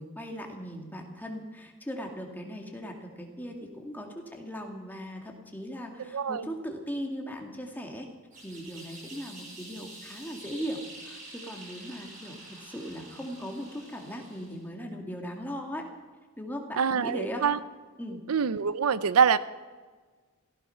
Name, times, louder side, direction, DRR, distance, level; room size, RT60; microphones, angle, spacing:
voice 1, 0.0-8.1 8.4-15.8 16.4-17.4 18.0-18.2, equal, 10° left, 2 dB, 2.0 m, -38 dB
voice 2, 6.1-6.5 16.8-17.6 18.3-19.4, right 6 dB, 85° right, 16 dB, 0.6 m, -25 dB
sound 1, 8.3-14.7, right 2 dB, 35° right, 4.4 m, -47 dB
16.5 x 15.0 x 5.8 m, 1.5 s
head